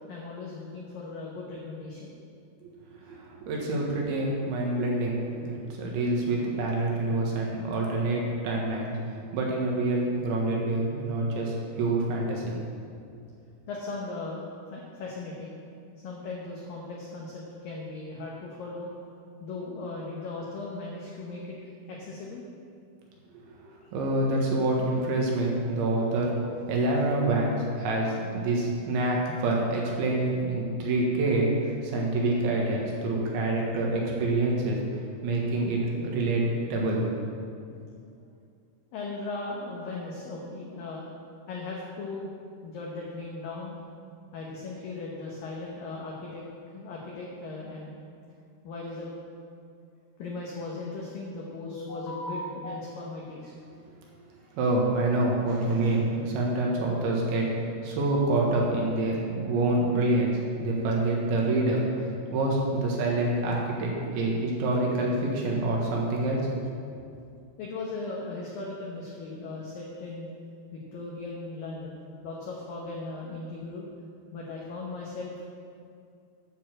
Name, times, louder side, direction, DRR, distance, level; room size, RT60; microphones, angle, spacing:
voice 1, 0.1-2.1 13.7-14.4 14.7-15.5 16.0-18.9 19.4-21.6 21.9-22.4 23.7-23.9 38.9-41.0 41.5-42.3 42.6-43.8 44.3-46.5 46.7-48.0 48.6-49.1 50.2-53.5 57.0-57.1 67.6-70.3 70.7-73.9 74.3-75.4, left 3 dB, 90° left, -3 dB, 1.9 m, -37 dB
voice 2, 3.1-9.0 9.3-12.6 23.5-23.6 23.9-26.4 26.7-34.8 35.2-36.4 36.7-37.1 54.6-57.5 57.8-61.8 62.3-66.5, right 2 dB, 70° right, -2 dB, 3.7 m, -26 dB
10.0 x 6.6 x 7.6 m, 2.4 s
omnidirectional pair, 5.8 m